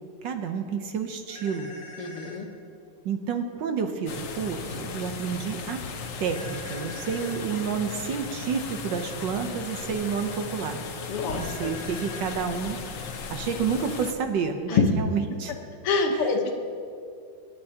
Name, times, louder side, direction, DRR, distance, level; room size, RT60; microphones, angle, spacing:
voice 1, 0.2-1.7 3.0-5.8 6.2-10.8 11.4-12.8 13.3-15.6 16.1-16.3, right 6 dB, 65° right, 6 dB, 1.3 m, -30 dB
sound 1, 1.3-2.4 6.3-7.4 11.3-12.5, left 2 dB, 15° left, 2.9 m, -44 dB
voice 2, 2.0-2.5 11.1-11.7 14.7-14.9 15.8-16.5, left 4 dB, 90° left, 4 dB, 2.0 m, -25 dB
sound 2, 4.1-14.1, left 5 dB, 65° left, 0.8 m, -36 dB
26.0 x 9.0 x 2.8 m, 2.3 s
omnidirectional pair, 2.4 m